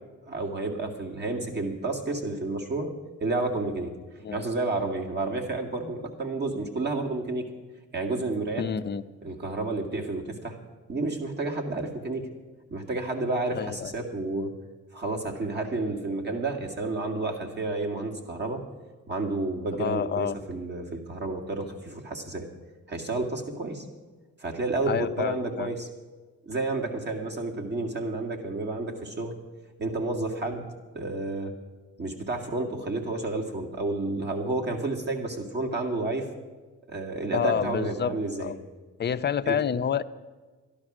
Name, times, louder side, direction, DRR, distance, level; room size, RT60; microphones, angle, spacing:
voice 1, 0.3-2.9 3.2-3.9 4.3-7.5 7.9-8.6 9.2-10.6 10.9-12.3 12.7-14.5 14.9-18.6 19.1-22.5 22.9-23.9 24.4-25.9 26.5-29.3 29.8-30.6 30.9-31.5 32.0-36.3 36.9-38.5 39.5-39.6, right 2 dB, 35° right, 1 dB, 2.2 m, -30 dB
voice 2, 8.6-9.0 13.5-13.9 19.8-20.4 24.9-25.7 37.3-38.1 38.4-38.6 39.0-40.0, left 8 dB, 35° left, 11 dB, 0.6 m, -28 dB
12.5 x 11.5 x 6.1 m, 1.3 s
cardioid pair, 90°, 30 cm